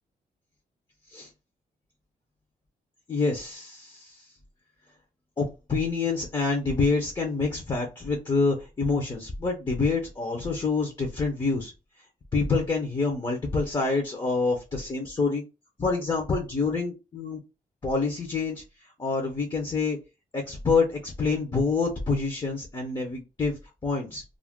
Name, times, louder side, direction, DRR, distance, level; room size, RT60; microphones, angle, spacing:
voice 1, 3.1-4.3 5.4-11.7 12.3-15.4 15.8-17.4 17.8-20.0 20.3-24.2, left 4 dB, 25° left, 2 dB, 0.7 m, -27 dB
2.4 x 2.1 x 3.5 m, 0.28 s
cardioid pair, 105°, 16 cm